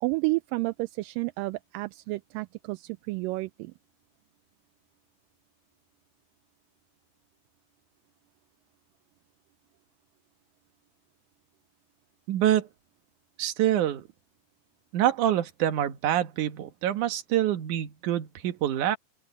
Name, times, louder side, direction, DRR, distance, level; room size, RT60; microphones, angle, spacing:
voice 1, 0.0-3.7, right 22 dB, 85° right, 2.3 m, -31 dB
voice 2, 12.3-12.7 13.4-14.0 14.9-19.0, right 12 dB, 65° right, 2.7 m, -26 dB
open air
omnidirectional pair, 3.9 m